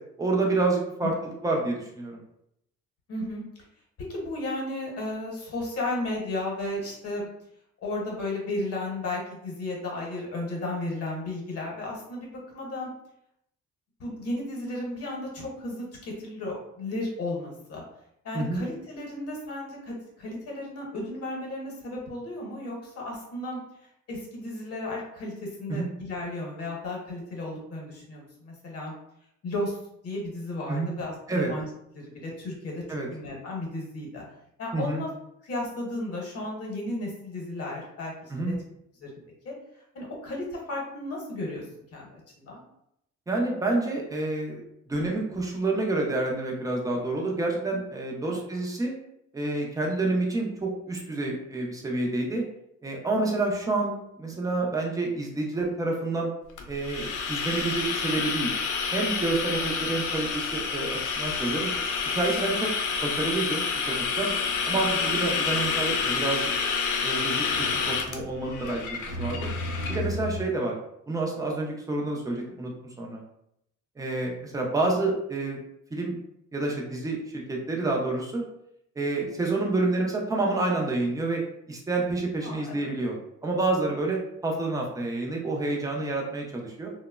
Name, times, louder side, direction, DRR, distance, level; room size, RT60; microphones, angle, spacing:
voice 1, 0.2-2.2 18.3-18.7 25.7-25.9 30.7-30.9 31.3-31.5 32.9-33.1 34.7-35.0 38.3-38.6 43.3-44.6 44.9-48.9 49.3-52.4 52.8-56.3 56.7-58.5 58.9-61.7 62.1-62.7 63.0-64.3 64.6-66.5 67.0-67.5 67.7-68.8 69.2-69.4 69.9-70.7 71.1-72.7 73.0-73.2 74.0-75.6 75.9-76.1 76.5-78.4 79.0-81.4 81.7-83.1 83.4-86.9, right 2 dB, 10° right, -1 dB, 0.3 m, -28 dB
voice 2, 3.1-3.4 4.0-7.3 7.8-12.9 14.0-17.8 18.2-23.6 24.1-28.9 29.4-29.8 30.0-31.7 31.9-34.2 34.6-35.1 35.4-38.5 39.0-39.5 39.9-41.6 41.9-42.6 48.2-48.4 59.7-59.8 82.4-82.8, left 2 dB, 55° left, -2 dB, 0.8 m, -34 dB
sound 1, 56.6-70.0, left 5 dB, 90° left, 0.5 m, -29 dB
sound 2, 65.1-65.4 65.7-65.8 67.3-70.4, left 1 dB, 70° right, 0.5 m, -36 dB
2.9 x 2.0 x 2.2 m, 0.77 s
cardioid pair, 165°, 30 cm